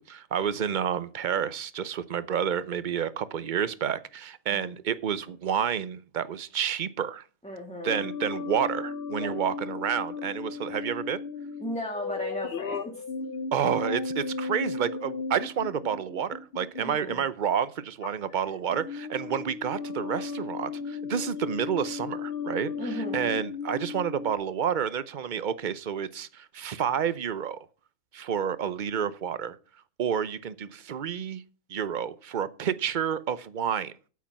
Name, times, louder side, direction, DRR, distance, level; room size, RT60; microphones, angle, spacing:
voice 1, 0.0-7.2 7.8-11.2 13.5-27.6 28.1-29.6 30.0-31.4 31.7-33.9, right 8 dB, 50° right, 0.6 m, -30 dB
voice 2, 7.4-8.0 9.2-9.4 11.6-13.0 16.8-17.2 22.8-23.4, equal, 5° left, 1.7 m, -36 dB
sound 1, 7.9-17.3 18.0-18.4 18.7-24.3, left 4 dB, 50° left, 0.8 m, -35 dB
8.6 x 8.3 x 5.9 m
omnidirectional pair, 1.5 m